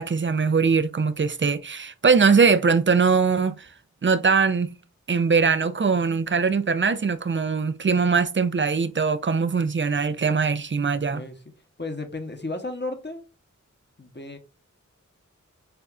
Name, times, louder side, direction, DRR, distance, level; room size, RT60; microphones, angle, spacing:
voice 1, 0.0-3.7 4.0-4.7 5.1-11.2, right 5 dB, 40° right, 0.4 m, -21 dB
voice 2, 11.1-11.4 11.8-13.2 14.0-14.4, left 2 dB, 35° left, 0.9 m, -33 dB
6.8 x 2.4 x 2.4 m
wide cardioid pair, 45°, 31 cm